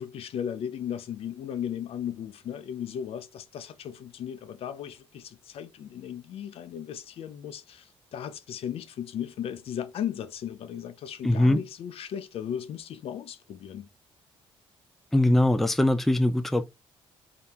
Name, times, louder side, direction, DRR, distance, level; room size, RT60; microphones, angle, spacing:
voice 1, 0.0-13.9, left 9 dB, 65° left, 0.6 m, -36 dB
voice 2, 11.2-11.6 15.1-16.7, left 1 dB, ahead, 0.4 m, -22 dB
3.7 x 2.8 x 3.5 m
cardioid pair, 125°, 11 cm